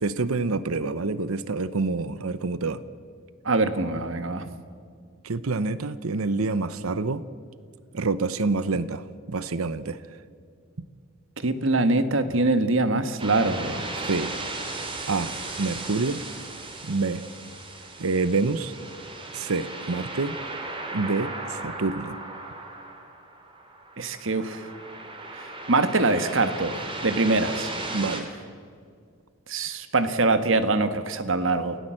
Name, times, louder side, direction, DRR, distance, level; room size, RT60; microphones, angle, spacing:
voice 1, 0.0-2.8 5.2-7.2 7.9-10.0 14.0-14.4 15.1-16.2 16.8-17.2 18.0-18.7 19.3-20.4 20.9-22.2 27.9-28.3, right 3 dB, 85° right, 0.8 m, -27 dB
voice 2, 3.4-4.4 11.4-13.8 24.0-24.6 25.7-26.7 27.0-27.7 29.5-31.8, right 2 dB, 65° right, 1.5 m, -23 dB
sound 1, 13.2-28.2, right 2 dB, 25° right, 2.7 m, -36 dB
29.0 x 18.0 x 7.7 m
head